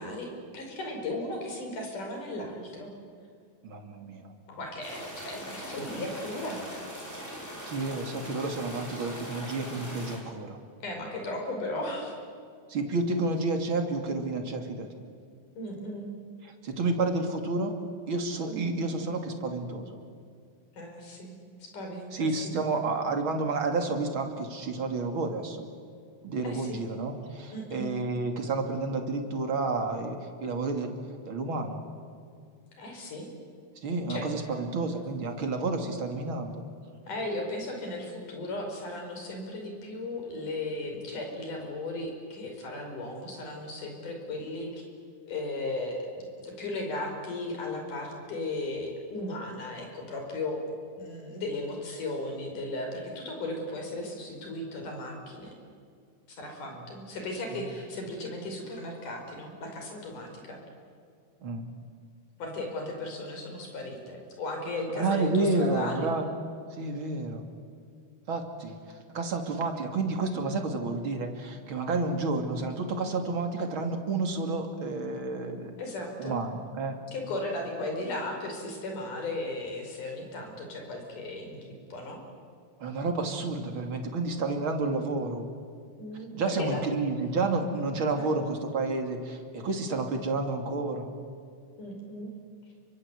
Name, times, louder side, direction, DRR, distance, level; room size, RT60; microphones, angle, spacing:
voice 1, 0.0-2.9 4.5-6.6 8.9-9.1 10.8-12.2 15.6-16.1 18.5-18.8 20.7-22.6 26.4-26.8 27.5-27.9 32.8-33.3 34.1-34.2 37.1-44.8 45.3-46.1 46.4-50.6 51.0-55.5 56.3-60.6 62.4-66.1 75.8-76.4 77.1-82.2 86.0-86.9 88.1-88.3 91.8-92.3, left 2 dB, 80° left, 2 dB, 6.6 m, -36 dB
voice 2, 3.6-4.3 7.6-10.6 12.7-14.9 16.6-17.7 18.1-20.0 22.1-25.7 26.2-30.9 31.2-31.8 33.8-36.6 57.5-57.7 61.4-61.7 64.9-66.2 66.7-67.4 68.3-75.7 76.2-77.0 82.8-85.4 86.3-91.1, right 3 dB, 40° right, 4 dB, 3.2 m, -30 dB
sound 1, 4.8-10.2, equal, 5° left, 5.5 m, -41 dB
29.5 x 24.0 x 8.3 m, 2.3 s
omnidirectional pair, 3.6 m